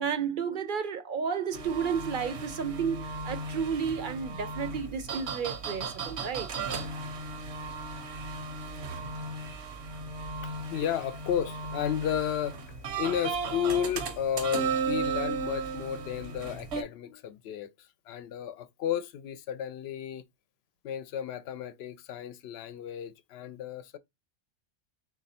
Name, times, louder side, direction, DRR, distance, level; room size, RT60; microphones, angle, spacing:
voice 1, 0.0-6.5, right 6 dB, 60° right, 0.6 m, -32 dB
sound 1, 1.5-16.8, right 4 dB, 80° right, 1.0 m, -36 dB
voice 2, 10.4-20.2 20.8-24.0, left 9 dB, 70° left, 0.8 m, -33 dB
3.3 x 2.6 x 4.1 m
omnidirectional pair, 1.1 m